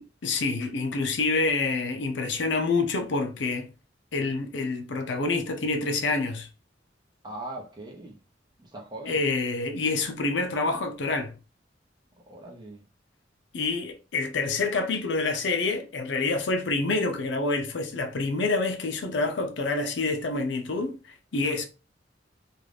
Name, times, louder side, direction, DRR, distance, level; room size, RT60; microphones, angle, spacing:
voice 1, 0.0-3.7 4.1-6.5 9.1-11.3 13.5-21.7, left 3 dB, 75° left, 0.6 m, -27 dB
voice 2, 7.2-8.2 8.6-9.2 12.3-12.8, right 2 dB, 25° right, 0.7 m, -40 dB
2.5 x 2.3 x 3.3 m
head